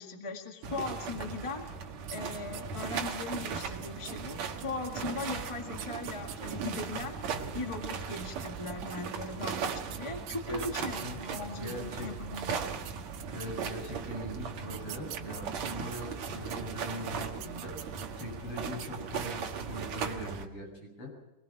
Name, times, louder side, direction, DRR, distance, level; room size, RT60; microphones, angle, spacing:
voice 1, 0.0-1.6 2.1-7.3 7.5-12.6, left 3 dB, 20° left, 3 dB, 0.8 m, -39 dB
sound 1, 0.6-20.5, right 6 dB, 60° right, 2.6 m, -38 dB
sound 2, 2.0-3.0 3.3-7.1 8.0-9.0 9.6-12.1 12.6-12.7 12.8-14.1 14.6-16.6 17.1-18.4 18.7-18.9 19.2-19.6, right 11 dB, 85° right, 2.8 m, -46 dB
voice 2, 10.5-11.2 11.5-12.3 13.3-17.7 18.2-21.1, equal, 40° left, 0 dB, 7.8 m, -41 dB
24.0 x 20.5 x 6.0 m, 1.0 s
omnidirectional pair, 3.9 m